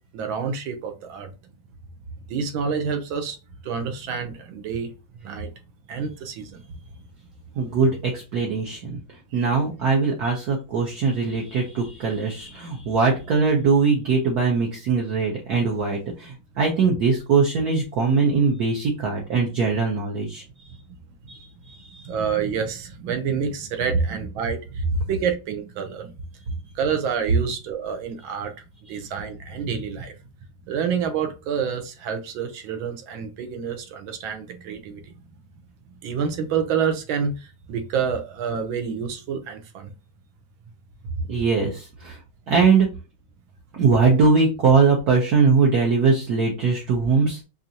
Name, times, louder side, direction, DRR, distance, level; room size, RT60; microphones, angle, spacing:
voice 1, 0.1-1.3 2.3-3.4 3.6-4.9 5.2-5.5 5.9-6.6 7.6-7.7 22.0-26.1 26.7-30.2 30.6-35.1 36.0-39.9, right 6 dB, 75° right, 1.5 m, -28 dB
voice 2, 7.6-9.0 9.3-20.4 21.3-22.1 41.3-42.2 42.5-42.9 43.7-47.4, right 4 dB, 60° right, 1.1 m, -21 dB
5.0 x 2.6 x 2.7 m
omnidirectional pair, 2.3 m